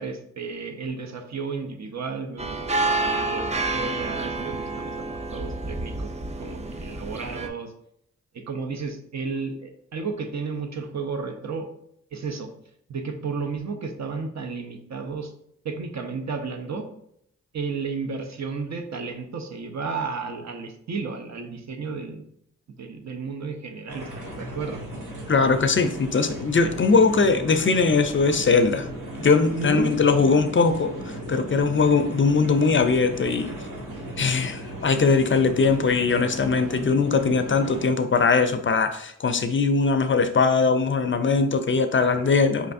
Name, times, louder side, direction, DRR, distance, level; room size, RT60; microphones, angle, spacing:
voice 1, 0.0-5.1 5.3-6.1 6.4-7.7 8.3-11.7 12.1-12.5 12.9-15.3 15.6-16.9 17.5-22.2 22.8-24.8 29.5-30.0 42.1-42.3, right 4 dB, 60° right, 5 dB, 0.7 m, -33 dB
sound 1, 2.4-7.5, right 2 dB, 20° right, 0.4 m, -29 dB
sound 2, 23.9-37.9, right 1 dB, 80° right, 1.2 m, -36 dB
voice 2, 25.3-28.9 29.2-30.9 31.3-33.5 34.2-42.7, left 4 dB, 40° left, 8 dB, 0.4 m, -21 dB
4.8 x 3.2 x 2.6 m, 0.72 s
cardioid pair, 55°, 31 cm